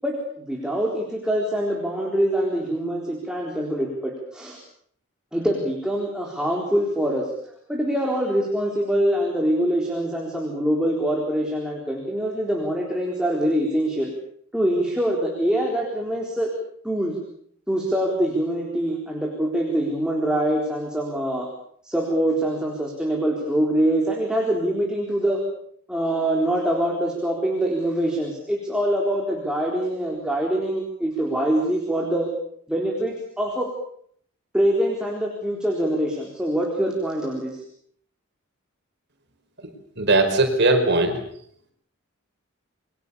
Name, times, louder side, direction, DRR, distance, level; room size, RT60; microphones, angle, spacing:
voice 1, 0.0-4.6 5.3-7.3 7.7-14.1 14.5-16.5 16.8-17.2 17.7-21.5 21.8-25.4 25.9-32.3 32.7-33.7 34.5-37.6, right 1 dB, 5° right, -1 dB, 4.1 m, -24 dB
voice 2, 40.0-41.2, right 2 dB, 55° right, 5 dB, 5.0 m, -19 dB
28.5 x 22.5 x 7.0 m, 0.65 s
head